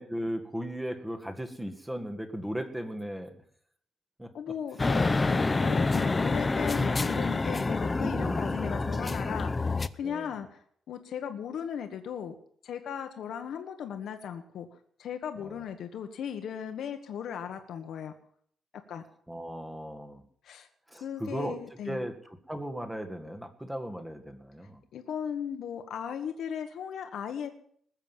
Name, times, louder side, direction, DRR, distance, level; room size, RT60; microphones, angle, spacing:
voice 1, 0.0-3.3 4.2-4.3 8.0-8.8 10.0-10.3 15.4-15.6 19.3-20.2 20.9-21.6 21.8-22.1 22.5-24.8, equal, 5° right, 6 dB, 1.7 m, -36 dB
voice 2, 4.3-12.3 12.6-14.7 15.0-18.1 18.9-19.0 20.4-20.7 20.9-22.1 24.9-27.5, left 8 dB, 75° left, 6 dB, 1.3 m, -37 dB
sound 1, 4.8-9.9, left 3 dB, 20° left, 0.6 m, -27 dB
20.0 x 7.4 x 7.3 m, 0.62 s
cardioid pair, 140°, 0 cm